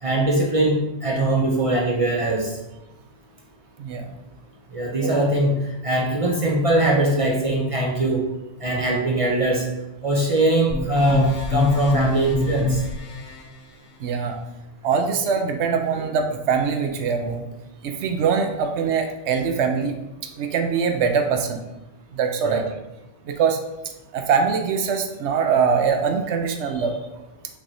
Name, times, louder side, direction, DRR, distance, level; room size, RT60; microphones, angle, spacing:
voice 1, 0.0-2.5 4.7-5.6 5.8-8.2 8.6-9.6 10.0-12.8 22.4-22.6, right 1 dB, 40° right, -2 dB, 0.5 m, -21 dB
voice 2, 3.8-4.1 5.0-5.1 14.0-14.4 14.8-17.4 17.8-20.0 20.2-21.6 22.1-22.8 23.2-23.6 24.1-27.0, right 6 dB, 70° right, 5 dB, 0.9 m, -23 dB
sound 1, 10.7-13.4, left 3 dB, 70° left, 1.1 m, -25 dB
6.0 x 3.3 x 2.7 m, 0.94 s
omnidirectional pair, 1.2 m